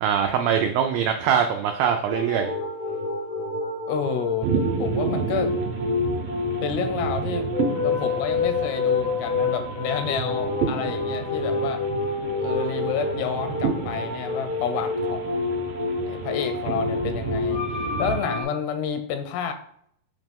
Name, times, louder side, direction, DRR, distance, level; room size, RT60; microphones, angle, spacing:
voice 1, 0.0-2.5, right 8 dB, 90° right, 4 dB, 2.0 m, -22 dB
sound 1, 2.1-18.4, left 3 dB, 50° left, 0.9 m, -28 dB
voice 2, 3.9-4.5 4.8-5.5 6.6-7.5 7.8-11.8 12.4-15.4 16.1-19.5, left 7 dB, 85° left, 7 dB, 2.8 m, -29 dB
sound 2, 4.4-18.3, right 6 dB, 75° right, 2.2 m, -31 dB
8.0 x 3.1 x 5.2 m, 0.68 s
omnidirectional pair, 4.8 m